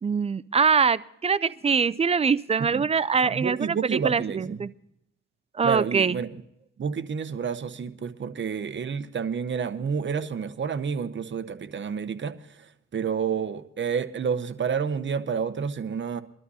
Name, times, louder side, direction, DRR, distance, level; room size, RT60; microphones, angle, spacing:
voice 1, 0.0-4.7 5.5-6.2, right 5 dB, 20° right, 17 dB, 0.4 m, -23 dB
voice 2, 3.2-4.6 5.6-6.3 6.8-16.2, right 6 dB, 40° right, 10 dB, 0.9 m, -29 dB
23.0 x 12.5 x 2.8 m, 0.80 s
cardioid pair, 90°, 30 cm